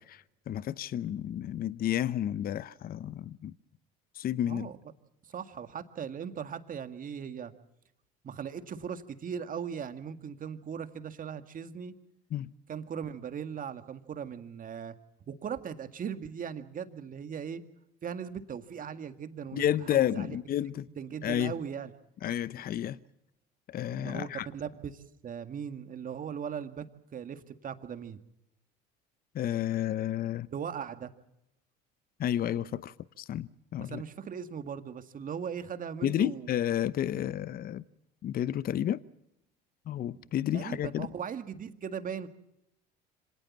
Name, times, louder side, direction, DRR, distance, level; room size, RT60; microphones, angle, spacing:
voice 1, 0.0-3.5 4.2-4.7 12.3-12.5 19.5-20.9 21.2-21.5 22.2-23.0 23.7-24.5 29.3-30.5 32.2-34.0 36.0-37.8 38.2-39.0 39.9-41.1, left 11 dB, 45° left, 0.8 m, -31 dB
voice 2, 4.5-4.8 5.2-7.5 8.2-11.9 12.7-14.9 15.3-17.6 18.0-20.4 21.0-21.9 23.9-24.3 24.5-26.9 27.1-28.2 30.5-31.1 33.8-36.5 40.1-40.2 40.5-42.3, right 7 dB, 40° right, 2.0 m, -39 dB
25.5 x 18.5 x 7.3 m
supercardioid pair, 80°, 21 cm